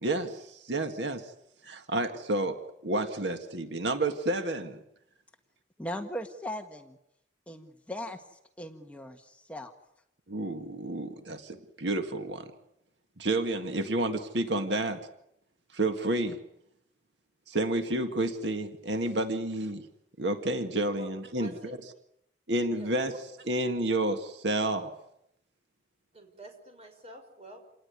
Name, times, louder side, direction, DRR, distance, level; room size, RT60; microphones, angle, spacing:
voice 1, 0.0-1.3 1.6-4.8 10.3-12.5 13.2-15.0 15.7-16.4 17.5-19.9 20.2-21.5 22.5-23.1 23.5-24.9, right 2 dB, 75° right, 7 dB, 1.9 m, -30 dB
voice 2, 5.8-7.0 7.5-9.7, left 1 dB, 5° left, 4 dB, 1.5 m, -39 dB
voice 3, 20.9-21.7 22.7-23.2 26.1-27.6, left 1 dB, 35° right, 4 dB, 5.9 m, -46 dB
28.5 x 19.0 x 9.6 m, 0.79 s
head